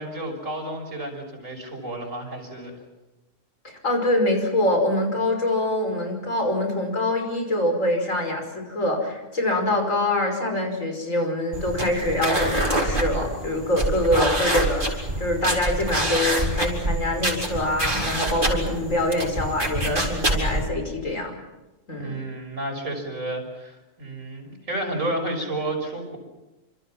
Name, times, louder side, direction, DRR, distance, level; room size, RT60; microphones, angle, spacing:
voice 1, 0.0-2.7 22.0-26.2, right 1 dB, 75° right, 3 dB, 6.5 m, -31 dB
voice 2, 3.6-21.3 21.9-22.2, left 1 dB, 75° left, 3 dB, 5.9 m, -25 dB
sound 1, 11.5-20.7, right 1 dB, 40° right, 4.7 m, -26 dB
28.0 x 26.5 x 6.1 m, 1.0 s
omnidirectional pair, 1.4 m